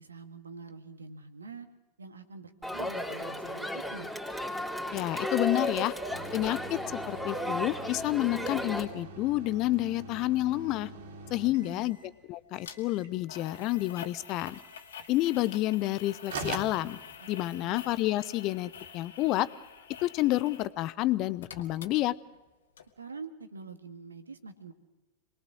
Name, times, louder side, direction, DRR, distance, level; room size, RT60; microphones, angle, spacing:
voice 1, 0.0-1.7 2.0-4.1 11.4-11.9 17.2-17.8 23.0-24.7, right 4 dB, 75° right, 7 dB, 1.9 m, -46 dB
Crowd, 2.6-8.9, left 1 dB, ahead, 3.2 m, -34 dB
voice 2, 4.9-5.9 6.3-10.9 11.3-14.6 15.1-17.0 17.3-19.5 20.0-22.2, left 16 dB, 40° left, 17 dB, 0.8 m, -29 dB
sound 1, 6.1-12.2 12.5-13.2 13.5-14.1 14.5-15.1 15.9-16.0 16.3-17.6, right 2 dB, 60° right, 3.4 m, -44 dB
sound 2, 12.6-12.8 13.3-20.7 21.0-22.5 22.8-22.9, left 7 dB, 65° left, 2.1 m, -47 dB
27.5 x 21.5 x 6.3 m, 1.1 s
figure-of-eight pair, 90°, 0 cm